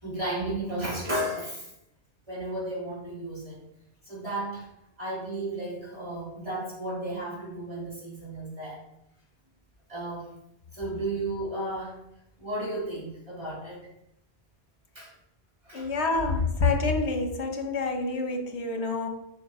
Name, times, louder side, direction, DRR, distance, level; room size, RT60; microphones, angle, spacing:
voice 1, 0.0-1.7 2.3-3.6 4.1-4.6 5.0-8.8 9.9-10.3 10.7-12.0 12.4-13.9 15.0-15.1 15.7-15.9, right 1 dB, 30° right, -7 dB, 3.5 m, -33 dB
voice 2, 15.7-19.1, left 3 dB, 85° left, 4 dB, 1.3 m, -27 dB
7.0 x 5.3 x 4.8 m, 0.80 s
omnidirectional pair, 1.1 m